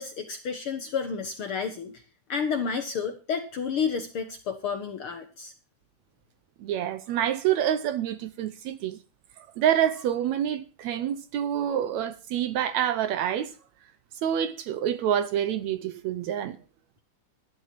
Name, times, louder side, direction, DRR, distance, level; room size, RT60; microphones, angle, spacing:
voice 1, 0.0-2.0 2.3-5.5, left 6 dB, 60° left, 1.5 m, -31 dB
voice 2, 6.6-9.0 9.6-13.5 14.2-16.6, right 10 dB, 70° right, 1.8 m, -27 dB
11.5 x 11.0 x 5.9 m
omnidirectional pair, 3.7 m